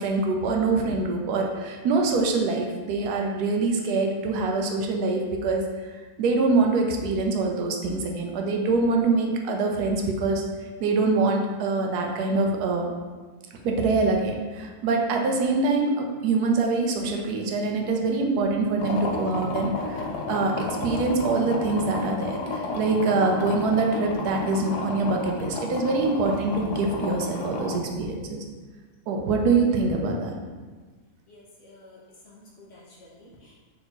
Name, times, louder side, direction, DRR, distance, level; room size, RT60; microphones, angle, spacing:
voice 1, 0.0-5.6 6.2-10.4 10.8-12.9 13.6-28.4 29.1-30.3, right 3 dB, 80° right, 2 dB, 1.1 m, -24 dB
sound 1, 18.8-27.8, left 3 dB, 85° left, 1.2 m, -32 dB
voice 2, 31.3-33.5, left 2 dB, 60° left, -4 dB, 0.8 m, -51 dB
4.0 x 3.4 x 3.0 m, 1.4 s
omnidirectional pair, 1.7 m